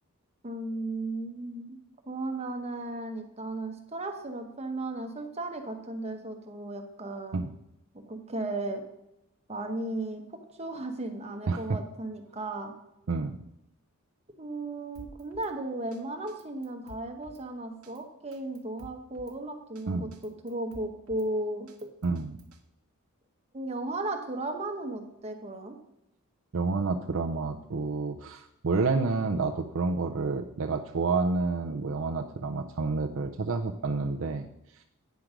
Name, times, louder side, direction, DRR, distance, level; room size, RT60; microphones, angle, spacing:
voice 1, 0.4-1.8 2.1-7.5 7.9-8.8 9.5-12.7 14.4-21.9 23.5-25.8, right 2 dB, 30° right, 4 dB, 1.1 m, -35 dB
voice 2, 11.5-11.8 13.1-13.4 19.9-20.1 22.0-22.4 26.5-34.5, right 3 dB, 60° right, 3 dB, 0.5 m, -29 dB
Drum kit, 15.0-15.5 15.9-16.0 16.3-17.4 17.8-18.0 18.3-19.4 19.8-19.9 20.1-21.3 21.7-22.6, right 1 dB, 80° right, 1.0 m, -51 dB
9.3 x 6.0 x 5.0 m, 0.83 s
head